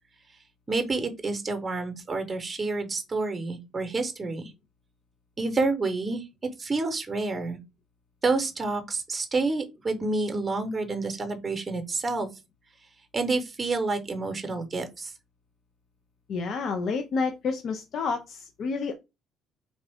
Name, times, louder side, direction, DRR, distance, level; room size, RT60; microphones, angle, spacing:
voice 1, 0.7-4.5 5.4-6.3 6.6-7.6 8.2-12.3 13.1-15.1, right 3 dB, 25° right, 7 dB, 0.8 m, -28 dB
voice 2, 16.3-18.9, left 4 dB, 60° left, 5 dB, 0.5 m, -29 dB
3.8 x 2.4 x 3.4 m, 0.24 s
cardioid pair, 85°, 0 cm